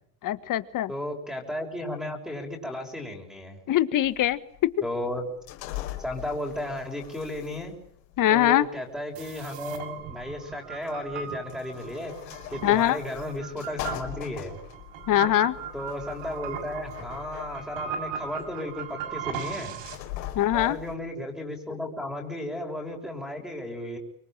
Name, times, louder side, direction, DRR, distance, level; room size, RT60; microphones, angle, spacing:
voice 1, 0.2-0.9 3.7-4.7 8.2-8.7 12.6-13.0 15.1-15.5 20.3-20.8, left 13 dB, 40° left, 14 dB, 1.8 m, -22 dB
voice 2, 0.9-3.6 4.8-5.3 6.0-7.7 8.3-12.1 12.5-14.6 15.7-19.8 20.5-24.0, left 1 dB, ahead, 2 dB, 6.4 m, -34 dB
sound 1, 4.0-20.9, left 13 dB, 85° left, 5.0 m, -42 dB
sound 2, 9.1-20.0, right 7 dB, 60° right, 6.2 m, -38 dB
26.0 x 22.5 x 9.1 m, 0.66 s
supercardioid pair, 125°, 49 cm